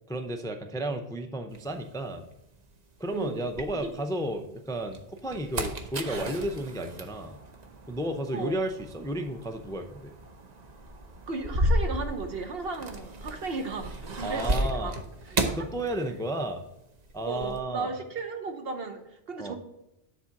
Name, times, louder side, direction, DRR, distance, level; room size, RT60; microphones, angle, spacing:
voice 1, 0.1-2.3 3.0-7.4 7.9-10.1 14.2-14.9 15.5-16.6 17.1-17.9 19.4-19.5, right 1 dB, 5° left, 6 dB, 0.4 m, -33 dB
sound 1, 1.5-4.3 4.8-16.5 16.8-17.6, right 1 dB, 45° right, 0.9 m, -34 dB
voice 2, 8.3-8.6 11.3-15.0 15.4-15.6 17.2-19.5, right 3 dB, 65° right, 5 dB, 1.2 m, -35 dB
10.0 x 4.1 x 5.9 m, 0.89 s
omnidirectional pair, 1.1 m